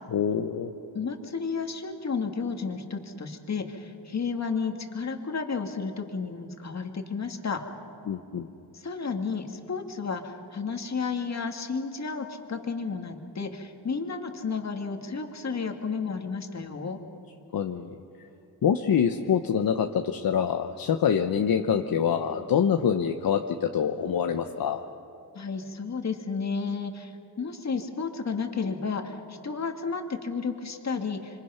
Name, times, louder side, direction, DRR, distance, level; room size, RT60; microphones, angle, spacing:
voice 1, 0.1-0.7 8.1-8.5 17.5-17.9 18.6-24.8, left 8 dB, 60° left, 6 dB, 1.0 m, -25 dB
voice 2, 0.9-7.6 8.7-17.0 25.3-31.4, left 5 dB, 40° left, 4 dB, 2.2 m, -32 dB
26.0 x 25.5 x 5.8 m, 2.9 s
cardioid pair, 105°, 40 cm